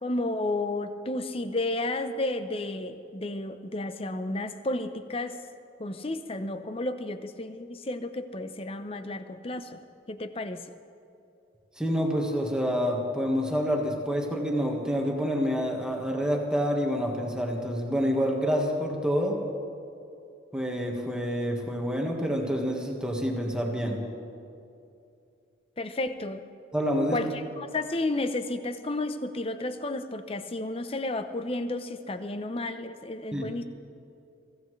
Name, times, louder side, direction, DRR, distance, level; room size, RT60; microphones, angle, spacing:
voice 1, 0.0-5.4 5.8-9.8 10.1-10.6 25.8-26.4 27.1-33.6, left 2 dB, 30° left, 10 dB, 0.7 m, -32 dB
voice 2, 11.8-19.4 20.5-24.0 26.7-27.2 33.3-33.5, equal, 5° right, 0 dB, 1.6 m, -27 dB
23.5 x 15.5 x 3.3 m, 2.7 s
head